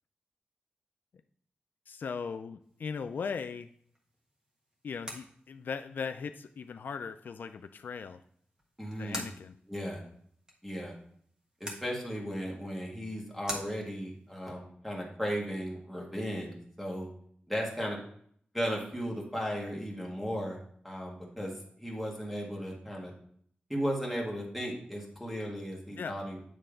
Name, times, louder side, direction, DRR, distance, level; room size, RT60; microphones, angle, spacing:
voice 1, 1.9-3.7 4.8-8.2 9.0-9.5 26.0-26.2, left 5 dB, 70° left, 9 dB, 0.3 m, -38 dB
sound 1, 2.6-14.3, equal, 20° right, 1.3 m, -48 dB
voice 2, 8.8-9.3 9.7-10.0 10.6-10.9 11.6-17.1 17.5-18.0 18.5-20.6 20.8-21.5 21.8-23.1 23.7-26.4, equal, ahead, -2 dB, 1.7 m, -35 dB
9.0 x 3.3 x 5.0 m, 0.63 s
wide cardioid pair, 155°, 3 cm